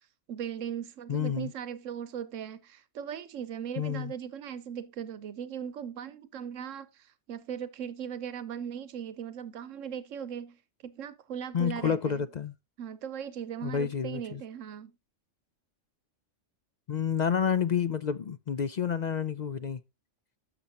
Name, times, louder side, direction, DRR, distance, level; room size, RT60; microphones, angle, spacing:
voice 1, 0.3-12.3 12.8-14.9, right 8 dB, 90° right, 1.2 m, -39 dB
voice 2, 1.1-1.5 3.8-4.1 11.5-12.5 13.6-14.4 16.9-19.8, left 7 dB, 55° left, 0.5 m, -29 dB
12.0 x 7.0 x 2.9 m
omnidirectional pair, 1.3 m